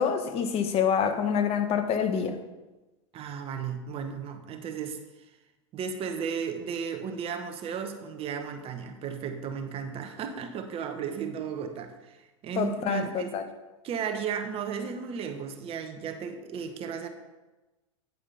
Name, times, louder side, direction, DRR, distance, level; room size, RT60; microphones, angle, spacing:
voice 1, 0.0-2.4 12.6-13.4, left 7 dB, 35° left, 0.9 m, -26 dB
voice 2, 3.1-5.3 5.7-13.3 13.8-17.1, right 7 dB, 35° right, 1.0 m, -34 dB
9.3 x 5.0 x 5.5 m
hypercardioid pair, 110°, 17 cm